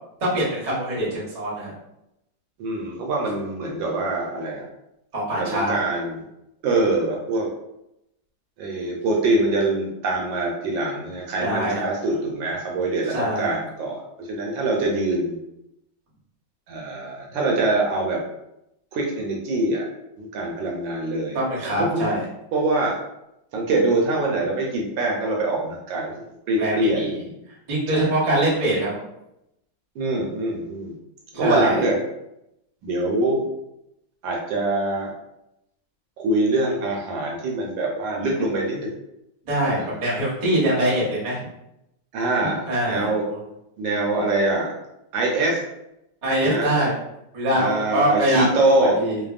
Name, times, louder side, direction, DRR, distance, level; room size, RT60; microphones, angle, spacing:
voice 1, 0.2-1.7 5.1-5.8 11.4-11.8 13.1-13.5 21.3-22.2 26.6-27.2 27.7-29.0 31.3-31.8 39.4-41.5 42.4-43.4 46.2-46.9 47.3-48.4 48.8-49.2, right 1 dB, 40° right, -6 dB, 0.6 m, -23 dB
voice 2, 2.6-4.7 5.3-6.2 6.6-7.5 8.6-15.4 16.7-18.2 18.9-19.8 20.2-22.1 22.5-23.0 23.5-27.1 27.9-28.1 30.0-30.9 31.4-32.0 32.8-33.4 34.2-35.1 36.2-38.9 39.8-39.9 42.1-43.2 43.8-44.7 45.1-45.6 46.4-46.7 47.5-49.0, right 2 dB, 75° right, -1 dB, 1.2 m, -24 dB
3.3 x 2.0 x 2.3 m, 0.85 s
omnidirectional pair, 2.2 m